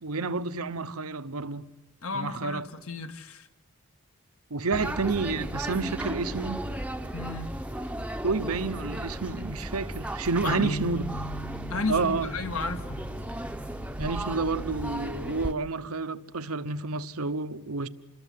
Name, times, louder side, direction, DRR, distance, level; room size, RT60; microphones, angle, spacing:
voice 1, 0.0-1.6 2.1-2.6 4.5-6.7 8.2-11.0 11.9-12.3 14.0-17.9, right 4 dB, 85° right, 1.0 m, -30 dB
voice 2, 2.0-3.5 7.1-7.6 10.4-10.8 11.7-13.0, left 3 dB, 70° left, 1.6 m, -33 dB
sound 1, 4.7-15.5, right 1 dB, 5° right, 0.8 m, -35 dB
sound 2, 10.6-16.9, right 1 dB, 45° left, 1.3 m, -43 dB
27.0 x 20.5 x 7.7 m
head